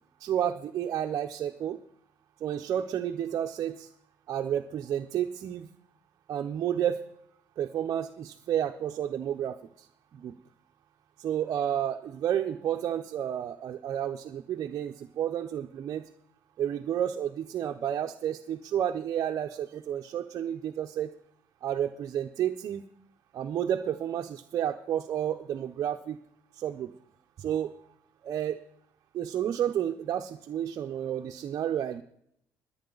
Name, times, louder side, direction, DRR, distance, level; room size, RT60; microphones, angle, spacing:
voice 1, 0.2-1.8 2.4-3.9 4.3-5.7 6.3-7.1 7.6-9.9 10.1-10.3 11.2-16.1 16.6-21.1 21.6-22.8 23.3-26.2 26.6-26.9 27.4-27.7 28.2-28.6 29.1-32.0, right 10 dB, 55° right, 4 dB, 0.7 m, -31 dB
20.5 x 8.8 x 4.0 m, 0.70 s
cardioid pair, 130°, 7 cm